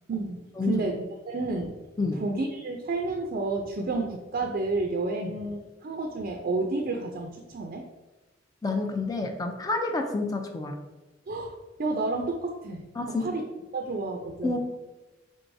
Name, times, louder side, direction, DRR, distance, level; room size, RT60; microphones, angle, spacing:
voice 1, 0.1-1.8 2.2-7.8 11.3-11.5 11.8-12.9 13.2-13.4 13.7-14.6, right 3 dB, 50° right, 3 dB, 0.4 m, -30 dB
voice 2, 8.6-10.8 13.0-13.3 14.4-14.6, left 3 dB, 20° left, 4 dB, 0.4 m, -29 dB
4.6 x 3.8 x 2.6 m, 1.1 s
head